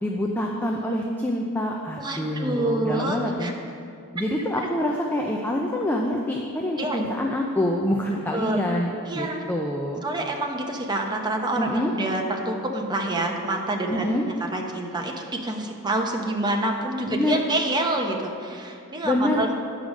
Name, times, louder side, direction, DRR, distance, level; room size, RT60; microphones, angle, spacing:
voice 1, 0.0-3.5 4.1-10.0 11.6-11.9 13.9-14.2 17.1-17.4 19.0-19.5, left 1 dB, 10° left, 0 dB, 0.5 m, -26 dB
voice 2, 2.0-3.5 4.6-4.7 6.8-7.0 8.3-8.6 9.1-9.4 10.0-19.5, right 2 dB, 20° right, 1 dB, 0.8 m, -27 dB
10.0 x 4.9 x 6.3 m, 2.4 s
head